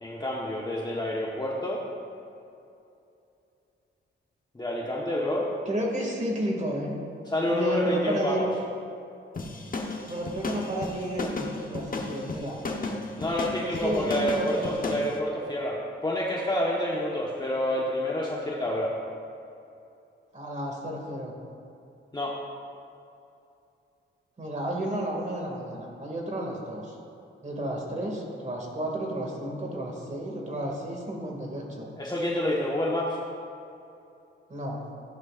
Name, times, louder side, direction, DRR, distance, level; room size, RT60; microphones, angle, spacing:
voice 1, 0.0-1.8 4.5-5.5 7.3-8.5 13.2-18.9 22.1-22.4 32.0-33.2, left 1 dB, 20° left, -3 dB, 1.3 m, -28 dB
voice 2, 5.7-6.9 7.5-8.5 10.1-12.6 13.6-14.8 20.3-21.3 24.4-27.0 27.4-31.9 34.5-34.8, right 1 dB, 35° right, -1 dB, 2.3 m, -32 dB
sound 1, 9.4-15.1, left 3 dB, 40° left, 1.2 m, -33 dB
14.0 x 11.0 x 2.5 m, 2.6 s
cardioid pair, 85°, 21 cm